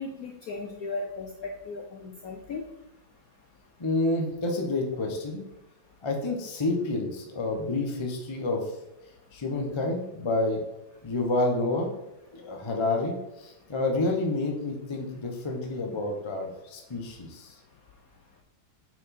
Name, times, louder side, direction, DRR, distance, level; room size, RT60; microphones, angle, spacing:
voice 1, 0.0-2.6, left 3 dB, 70° left, 2 dB, 0.8 m, -36 dB
voice 2, 3.8-5.4 6.0-8.6 9.3-10.6 11.0-12.0 12.3-17.5, left 2 dB, 40° left, 2 dB, 0.4 m, -29 dB
6.0 x 4.6 x 4.2 m, 0.90 s
omnidirectional pair, 2.2 m